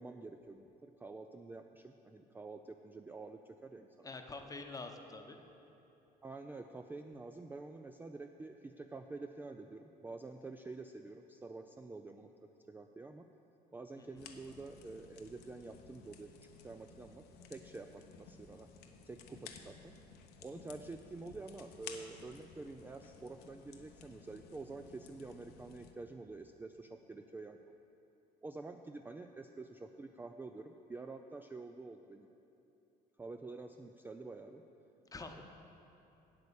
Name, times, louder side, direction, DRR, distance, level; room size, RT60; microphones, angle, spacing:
voice 1, 0.0-4.1 6.2-13.3 13.7-18.7 19.1-20.0 20.4-27.6 28.4-32.3 33.2-34.6, right 3 dB, 10° right, 5 dB, 0.3 m, -48 dB
voice 2, 4.0-5.4 14.0-14.1 35.1-35.4, left 3 dB, 20° left, 4 dB, 0.9 m, -46 dB
sound 1, 14.2-25.9, left 6 dB, 75° left, 0.8 m, -55 dB
8.2 x 8.2 x 7.0 m, 2.9 s
cardioid pair, 110°, 17 cm